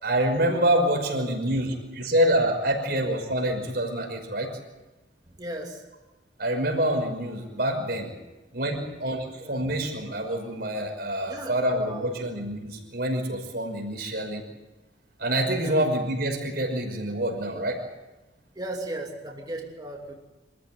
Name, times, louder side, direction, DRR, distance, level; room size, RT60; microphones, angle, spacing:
voice 1, 0.0-4.5 6.4-8.1 8.5-14.4 15.2-17.8, right 1 dB, 60° right, 2 dB, 5.6 m, -26 dB
voice 2, 5.4-5.9 9.4-9.5 11.2-12.3 15.6-15.8 18.5-20.1, right 1 dB, 20° right, 0 dB, 2.9 m, -36 dB
26.0 x 15.0 x 9.2 m, 1.1 s
head